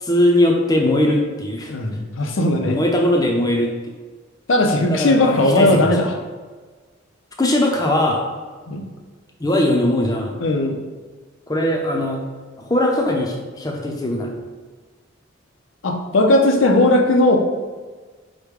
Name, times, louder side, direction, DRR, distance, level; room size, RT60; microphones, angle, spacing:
voice 1, 0.0-1.7 2.6-3.7 4.8-5.9 7.4-8.2 9.4-10.4 11.5-12.2 12.6-14.3, left 1 dB, 20° left, 0 dB, 0.6 m, -20 dB
voice 2, 1.7-2.8 4.5-6.1 8.7-8.9 10.4-10.8 15.8-17.4, left 2 dB, 70° left, 4 dB, 0.6 m, -17 dB
5.0 x 2.2 x 4.7 m, 1.4 s
head